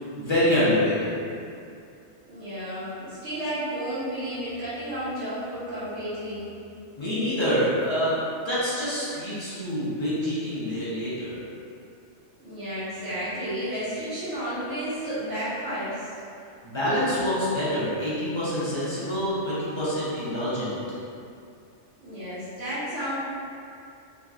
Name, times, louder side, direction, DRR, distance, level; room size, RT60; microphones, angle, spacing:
voice 1, 0.2-1.2 7.0-11.4 16.6-20.8, equal, 25° left, -11 dB, 0.8 m, -26 dB
voice 2, 2.2-6.5 12.4-16.1 22.0-23.2, equal, 75° right, -12 dB, 1.5 m, -32 dB
3.4 x 2.9 x 2.4 m, 2.5 s
omnidirectional pair, 1.2 m